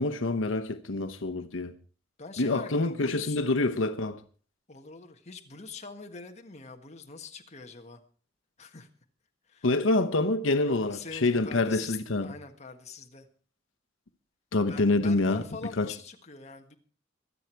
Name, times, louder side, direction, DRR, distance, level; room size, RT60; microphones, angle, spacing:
voice 1, 0.0-1.7 2.4-4.2 9.6-12.3 14.5-15.4 15.8-15.9, left 2 dB, 85° left, 0.9 m, -26 dB
voice 2, 2.2-3.4 4.7-8.0 8.6-8.9 9.5-9.7 10.6-13.3 14.7-16.8, left 4 dB, 35° left, 1.6 m, -44 dB
24.0 x 8.1 x 4.6 m
head